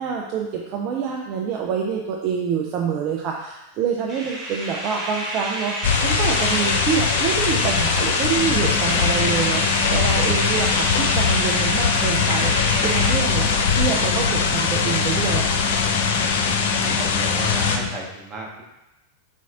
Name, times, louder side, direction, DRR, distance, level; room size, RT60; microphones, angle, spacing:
voice 1, 0.0-15.6, right 6 dB, 40° right, 0 dB, 0.4 m, -26 dB
sound 1, 4.1-13.1, right 1 dB, 5° right, 1.3 m, -29 dB
sound 2, 5.8-17.8, left 5 dB, 55° left, 0.4 m, -21 dB
sound 3, 8.4-17.9, left 5 dB, 10° left, 0.8 m, -29 dB
voice 2, 16.5-18.6, right 2 dB, 25° right, -2 dB, 0.8 m, -35 dB
4.3 x 4.0 x 2.5 m, 0.94 s
figure-of-eight pair, 90°, 0 cm